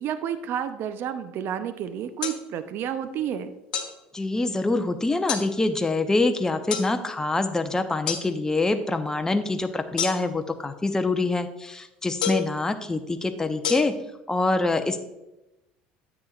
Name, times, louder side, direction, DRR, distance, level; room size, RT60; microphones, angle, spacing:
voice 1, 0.0-3.5, right 9 dB, 55° right, 10 dB, 0.6 m, -30 dB
sound 1, 2.2-2.4 3.7-3.9 5.3-5.5 6.7-6.9 8.1-8.2 10.0-10.4 12.2-12.5 13.6-13.7, left 8 dB, 85° left, 1.1 m, -28 dB
voice 2, 4.1-13.9 14.3-15.0, left 2 dB, 15° left, 7 dB, 0.7 m, -25 dB
9.6 x 8.0 x 2.4 m, 0.94 s
hypercardioid pair, 75°, 4 cm